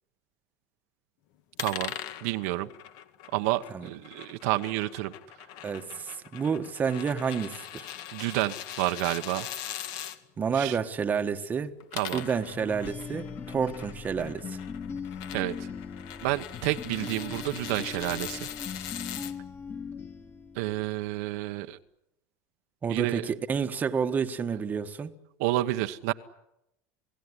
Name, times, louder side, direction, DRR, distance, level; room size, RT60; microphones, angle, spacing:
sound 1, 1.6-10.2 11.7-19.3, left 11 dB, 55° left, 2.0 m, -41 dB
voice 1, 1.6-1.9 2.2-2.7 3.3-5.1 8.1-9.5 10.5-10.8 11.9-12.2 15.3-15.7 16.2-18.5 20.6-21.8 22.9-23.2 25.4-26.1, right 17 dB, 70° right, 1.1 m, -29 dB
voice 2, 5.6-7.9 10.4-11.7 12.1-14.6 22.8-25.1, right 6 dB, 20° right, 1.3 m, -29 dB
sound 2, 12.4-21.1, left 5 dB, 25° left, 2.0 m, -40 dB
28.0 x 17.5 x 9.9 m
supercardioid pair, 145°, 8 cm